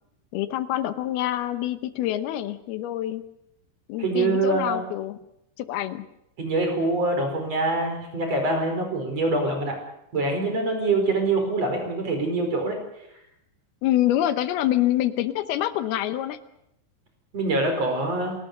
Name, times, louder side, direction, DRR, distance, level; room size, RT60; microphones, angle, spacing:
voice 1, 0.3-3.2 3.9-5.2 5.6-6.1 13.8-16.4, left 13 dB, 75° left, 12 dB, 2.8 m, -26 dB
voice 2, 4.0-4.8 6.4-9.8 10.1-12.8 17.3-18.3, right 2 dB, 40° right, 4 dB, 5.6 m, -24 dB
29.5 x 18.5 x 6.7 m, 0.82 s
omnidirectional pair, 4.8 m